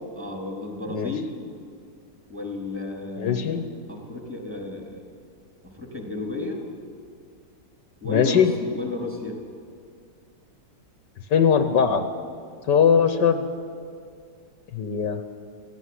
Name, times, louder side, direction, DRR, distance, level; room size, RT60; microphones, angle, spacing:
voice 1, 0.2-1.3 2.3-3.6 3.9-5.0 5.6-6.6 8.0-9.4, left 3 dB, 5° right, 1 dB, 3.5 m, -33 dB
voice 2, 3.2-3.7 8.0-8.5 11.3-12.0 12.7-13.5 14.7-15.2, left 7 dB, 70° left, 9 dB, 1.6 m, -20 dB
17.0 x 15.5 x 9.8 m, 2.3 s
omnidirectional pair, 2.0 m